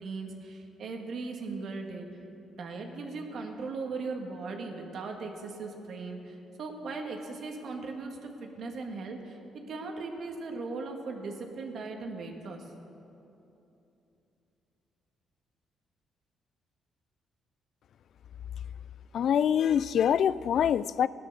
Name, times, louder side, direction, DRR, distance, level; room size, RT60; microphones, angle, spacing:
voice 1, 0.0-2.1 2.5-12.7, right 3 dB, 65° right, 2 dB, 2.0 m, -38 dB
voice 2, 19.1-21.1, left 9 dB, 65° left, 18 dB, 0.3 m, -25 dB
17.0 x 11.0 x 6.9 m, 2.9 s
cardioid pair, 90°, 0 cm